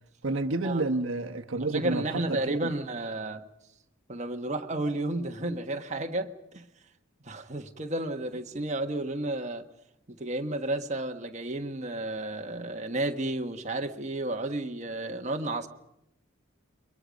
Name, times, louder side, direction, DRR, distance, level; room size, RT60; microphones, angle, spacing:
voice 1, 0.2-2.7, right 2 dB, 75° right, 1.2 m, -30 dB
voice 2, 1.6-3.4 4.1-6.7 7.2-9.6 10.1-15.7, right 2 dB, 35° right, 1.4 m, -32 dB
29.0 x 23.0 x 5.3 m
head